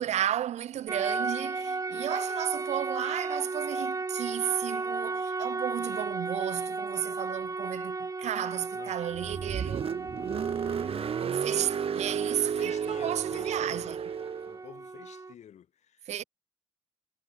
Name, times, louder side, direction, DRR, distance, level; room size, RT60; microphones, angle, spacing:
voice 1, 0.0-9.8 11.2-14.0 16.1-16.2, right 11 dB, 75° right, 0.5 m, -33 dB
sound 1, 0.9-15.3, right 3 dB, 30° right, 1.0 m, -35 dB
voice 2, 8.7-9.6 9.9-10.6 11.0-11.9 12.6-14.0 14.4-16.2, left 9 dB, 80° left, 3.7 m, -51 dB
Car, 9.1-14.6, right 7 dB, 55° right, 0.9 m, -32 dB
cardioid pair, 65°, 12 cm